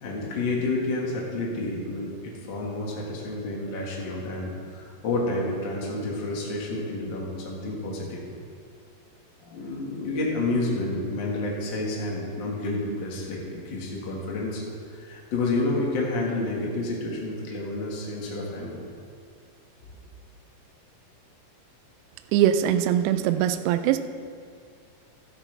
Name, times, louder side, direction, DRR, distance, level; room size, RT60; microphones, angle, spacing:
voice 1, 0.0-8.2 9.4-14.6 14.9-18.8, left 2 dB, 65° left, -2 dB, 1.1 m, -29 dB
voice 2, 22.3-24.0, right 11 dB, 80° right, 10 dB, 2.5 m, -22 dB
12.5 x 12.5 x 3.4 m, 2.3 s
omnidirectional pair, 5.1 m